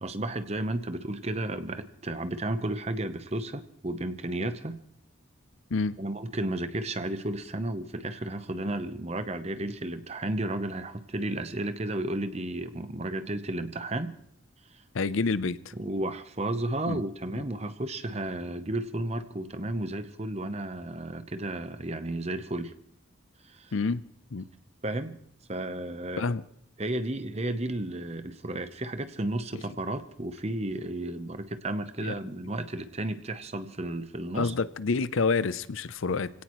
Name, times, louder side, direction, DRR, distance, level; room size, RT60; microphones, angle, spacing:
voice 1, 0.0-4.8 6.0-14.2 15.7-22.7 23.5-23.7 24.8-25.2 25.5-26.3 26.8-34.5, right 1 dB, 30° right, 10 dB, 0.9 m, -33 dB
voice 2, 14.9-15.6 16.9-17.0 23.7-24.0 24.3-24.5 26.2-26.4 32.0-32.1 34.3-36.3, left 4 dB, 75° left, 16 dB, 0.6 m, -28 dB
26.0 x 17.0 x 3.1 m, 0.68 s
head